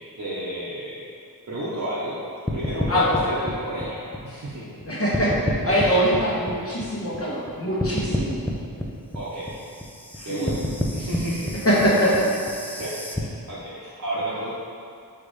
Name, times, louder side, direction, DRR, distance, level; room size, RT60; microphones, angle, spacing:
voice 1, 0.2-1.0 1.5-2.2 2.5-4.7 9.1-9.6 10.2-10.6 10.9-11.6 12.6-12.9 13.5-14.5, right 1 dB, 45° right, -10 dB, 0.9 m, -31 dB
sound 1, 2.5-4.8 5.1-7.5 7.8-13.2, left 1 dB, 5° left, 0.5 m, -29 dB
voice 2, 4.9-5.3 5.6-8.4 10.2-10.5 11.6-12.3, equal, 35° left, -7 dB, 1.3 m, -22 dB
4.7 x 3.3 x 3.1 m, 2.4 s
cardioid pair, 45°, 39 cm